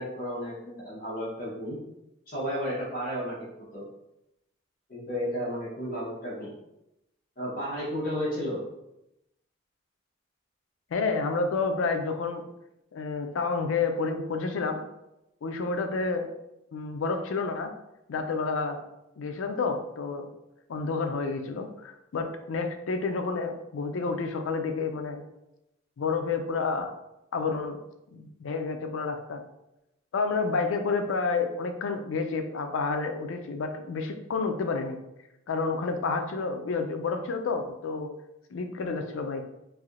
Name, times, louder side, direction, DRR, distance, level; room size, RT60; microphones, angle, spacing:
voice 1, 0.0-1.8 2.3-3.4 3.7-3.9 4.9-6.5 7.4-8.6, equal, 45° left, -9 dB, 0.8 m, -32 dB
voice 2, 10.9-12.4 12.9-14.8 15.4-16.3 16.7-17.7 18.1-18.8 19.2-20.3 20.7-25.2 26.0-26.9 27.3-27.8 28.1-29.4 30.1-35.0 35.5-38.1 38.5-39.4, left 4 dB, 85° left, 6 dB, 0.4 m, -29 dB
3.3 x 2.6 x 2.4 m, 0.88 s
head